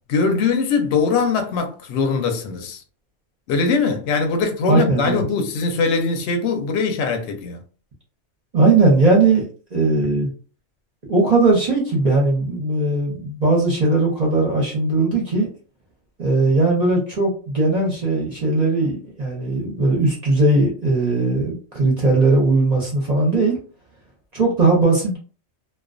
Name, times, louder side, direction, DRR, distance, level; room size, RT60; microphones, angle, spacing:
voice 1, 0.1-2.8 3.5-7.6, left 4 dB, 65° left, 0.8 m, -21 dB
voice 2, 4.7-5.2 8.5-10.3 11.1-15.5 16.2-23.6 24.3-25.2, right 3 dB, 40° right, 0.6 m, -18 dB
2.3 x 2.2 x 2.4 m
omnidirectional pair, 1.3 m